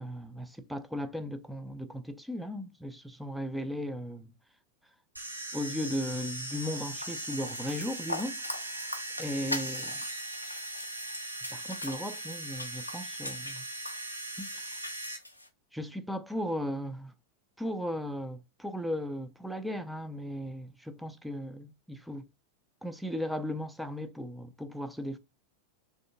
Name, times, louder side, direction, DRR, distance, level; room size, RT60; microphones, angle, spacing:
voice 1, 0.0-4.3 5.5-8.9 9.2-10.0 11.5-13.7 14.4-14.8 15.7-17.1 17.6-22.3 22.8-25.2, equal, ahead, 0.4 m, -36 dB
sound 1, 5.2-15.2, right 1 dB, 85° right, 0.7 m, -39 dB
sound 2, 7.0-15.5, left 1 dB, 85° left, 0.5 m, -42 dB
3.3 x 2.5 x 2.6 m
figure-of-eight pair, 90°, 0 cm